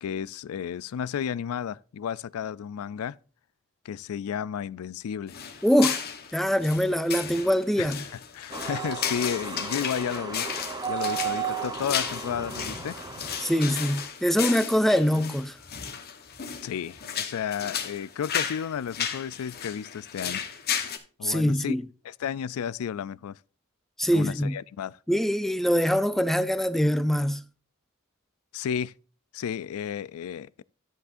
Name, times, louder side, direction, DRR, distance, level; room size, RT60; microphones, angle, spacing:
voice 1, 0.0-3.2 3.8-5.4 7.8-7.9 8.3-10.5 10.9-13.0 16.6-20.5 21.2-21.7 22.0-23.4 24.1-25.0 28.5-28.9 29.3-30.6, left 8 dB, 80° left, 0.3 m, -32 dB
sound 1, 5.3-21.0, left 7 dB, 45° left, 1.1 m, -34 dB
voice 2, 5.6-6.0 6.3-8.0 13.4-15.6 21.2-21.8 24.0-24.6 25.1-27.4, equal, ahead, 0.4 m, -23 dB
sound 2, 8.5-14.1, right 7 dB, 20° right, 1.0 m, -34 dB
11.0 x 7.8 x 2.6 m
head